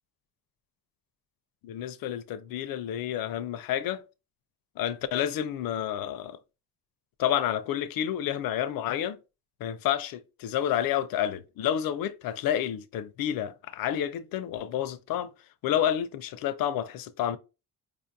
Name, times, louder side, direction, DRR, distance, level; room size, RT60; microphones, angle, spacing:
voice 1, 1.6-4.0 4.8-6.4 7.2-9.2 9.6-15.3 15.6-17.4, left 10 dB, 70° left, 0.5 m, -29 dB
4.8 x 2.4 x 2.6 m
cardioid pair, 170°, 36 cm